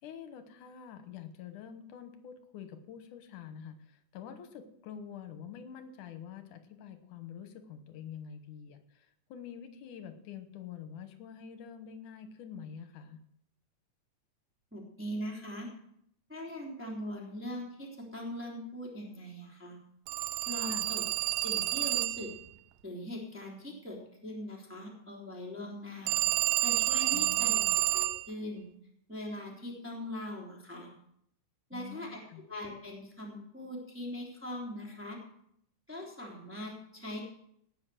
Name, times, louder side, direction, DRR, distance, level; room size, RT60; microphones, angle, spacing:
voice 1, 0.0-13.2 20.6-20.9 27.1-27.8 31.7-32.4, left 8 dB, 80° left, 8 dB, 2.7 m, -47 dB
voice 2, 14.7-15.7 16.3-19.8 20.5-21.0 21.3-22.3 22.8-26.2 26.6-27.6 27.9-28.6 29.1-30.9 31.7-32.2 32.5-35.2 35.9-37.2, left 1 dB, 5° right, -2 dB, 2.9 m, -41 dB
Telephone, 20.1-22.4 26.1-28.3, right 16 dB, 80° right, 1.6 m, -29 dB
18.5 x 6.2 x 7.8 m, 0.72 s
omnidirectional pair, 3.6 m